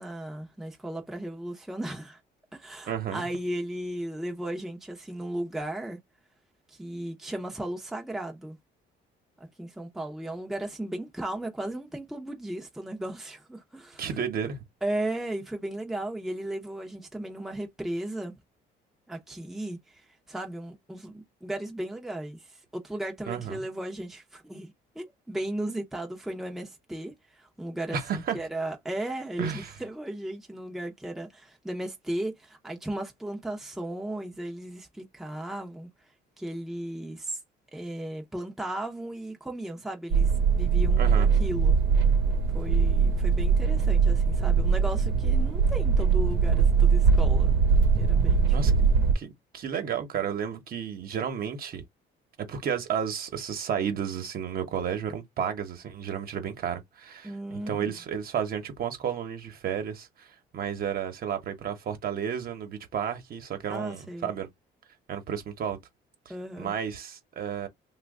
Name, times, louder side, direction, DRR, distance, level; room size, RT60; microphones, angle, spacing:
voice 1, 0.0-2.2 2.5-6.0 6.7-8.6 9.4-14.1 14.8-18.3 19.1-20.0 20.3-35.9 36.4-37.4 37.7-41.8 42.5-47.5 48.0-49.1 57.2-57.9 63.7-64.3 66.3-66.8, right 1 dB, ahead, 0.7 m, -36 dB
voice 2, 2.9-3.3 14.0-14.6 23.3-23.6 27.9-28.4 29.4-29.7 41.0-41.3 48.5-48.9 49.1-51.8 52.4-57.3 57.7-60.3 60.5-64.5 65.1-65.8 66.6-67.7, right 8 dB, 50° right, 1.0 m, -32 dB
sound 1, 40.1-49.1, right 5 dB, 80° right, 0.9 m, -22 dB
3.1 x 2.3 x 3.6 m
cardioid pair, 140°, 19 cm